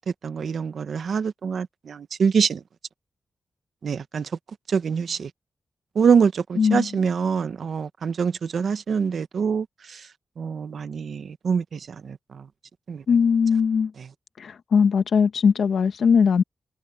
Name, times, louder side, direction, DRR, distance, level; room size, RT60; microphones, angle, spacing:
voice 1, 0.2-2.6 3.8-4.3 4.7-5.3 5.9-9.6 10.4-12.4 12.9-13.0, right 6 dB, 65° right, 1.1 m, -24 dB
voice 2, 6.6-6.9 13.1-13.9 14.4-16.4, left 6 dB, 70° left, 1.1 m, -20 dB
wide cardioid pair, 145°, 0 cm